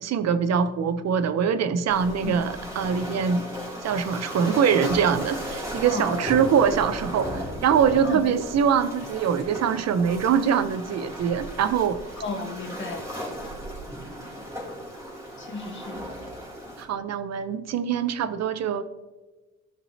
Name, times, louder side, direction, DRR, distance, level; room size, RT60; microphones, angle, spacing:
voice 1, 0.0-3.5 3.8-12.0 16.8-18.8, right 7 dB, 60° right, 12 dB, 0.7 m, -23 dB
Waves surf, 1.9-16.8, equal, 10° right, 2.7 m, -36 dB
voice 2, 5.8-6.3 8.0-8.3 12.2-13.1 15.4-16.0, left 3 dB, 40° left, 2 dB, 1.7 m, -33 dB
15.0 x 6.2 x 2.8 m, 1.2 s
cardioid pair, 90°, 30 cm